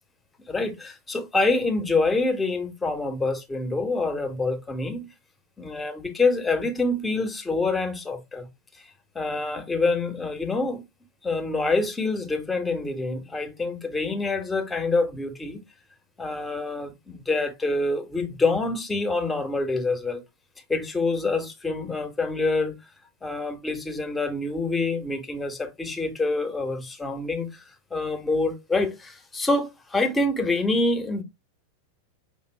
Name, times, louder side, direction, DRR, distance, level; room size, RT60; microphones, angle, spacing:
voice 1, 0.5-5.1 5.6-8.5 9.1-10.8 11.2-15.6 16.2-20.2 20.7-22.8 23.2-27.6 27.9-31.2, left 3 dB, 10° left, 1.0 m, -26 dB
5.9 x 2.4 x 3.3 m
figure-of-eight pair, 90°, 0 cm